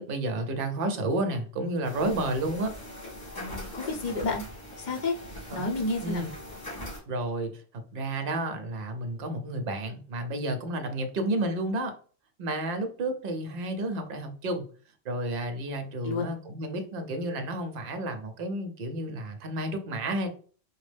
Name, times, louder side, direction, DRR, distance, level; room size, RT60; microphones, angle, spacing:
voice 1, 0.0-2.7 5.5-5.6 6.0-6.3 7.1-7.5 7.9-11.9 12.4-14.6 15.1-20.3, right 1 dB, 55° right, 6 dB, 0.7 m, -31 dB
sound 1, 1.8-7.0, left 1 dB, 85° left, 2.3 m, -41 dB
voice 2, 3.3-4.4 4.8-5.1 5.5-6.2 16.0-16.3, left 3 dB, 45° left, 1 dB, 0.8 m, -30 dB
4.4 x 2.0 x 3.3 m, 0.42 s
omnidirectional pair, 1.3 m